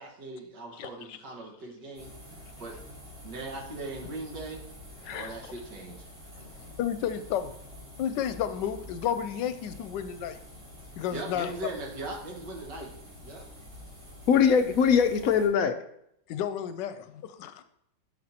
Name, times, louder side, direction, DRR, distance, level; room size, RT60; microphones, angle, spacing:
voice 1, 0.0-2.1 2.6-2.8 3.2-4.7 5.1-6.1 11.1-12.9 13.2-13.4, right 2 dB, 75° right, -1 dB, 2.2 m, -39 dB
voice 2, 0.7-1.2 5.0-5.3 6.8-7.5 8.0-10.4 11.0-11.5 16.3-17.6, left 9 dB, 85° left, 11 dB, 1.2 m, -32 dB
sound 1, 1.9-15.5, left 1 dB, 55° right, 4.0 m, -47 dB
voice 3, 14.3-15.8, left 7 dB, 70° left, 8 dB, 0.9 m, -21 dB
11.5 x 6.3 x 2.9 m, 0.73 s
omnidirectional pair, 1.9 m